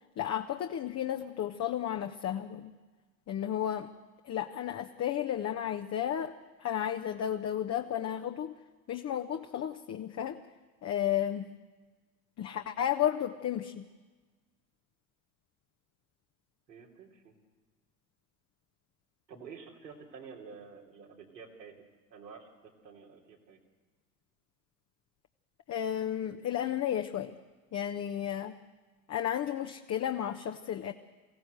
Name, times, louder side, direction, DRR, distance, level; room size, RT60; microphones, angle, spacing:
voice 1, 0.2-2.7 3.3-3.9 4.2-6.3 6.6-8.5 8.9-10.4 10.8-11.5 12.4-13.8 25.7-27.4 27.7-28.6 29.1-30.9, left 10 dB, 35° left, 6 dB, 0.9 m, -33 dB
voice 2, 16.7-17.3 19.3-21.7 22.1-23.6, right 6 dB, 85° right, -2 dB, 3.3 m, -49 dB
24.0 x 16.0 x 8.0 m, 1.3 s
hypercardioid pair, 75°, 48 cm